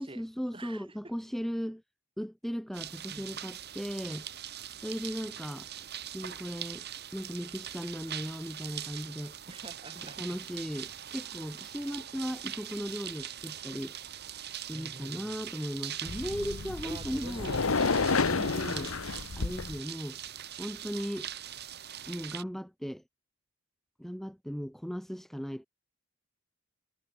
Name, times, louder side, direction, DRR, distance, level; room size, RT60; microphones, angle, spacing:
voice 1, 0.0-1.8 2.2-4.3 4.8-5.7 6.1-6.8 7.1-9.3 10.2-13.9 14.6-17.5 18.3-19.0 19.3-20.2 20.6-21.3 22.1-23.0 24.0-25.7, equal, ahead, 1.3 m, -37 dB
voice 2, 0.5-0.9 3.1-3.4 9.5-10.4 14.7-15.5 16.8-18.0, right 2 dB, 25° right, 3.4 m, -48 dB
sound 1, 2.7-22.4, right 10 dB, 50° right, 2.1 m, -42 dB
sound 2, 16.1-19.8, left 4 dB, 75° left, 1.0 m, -30 dB
head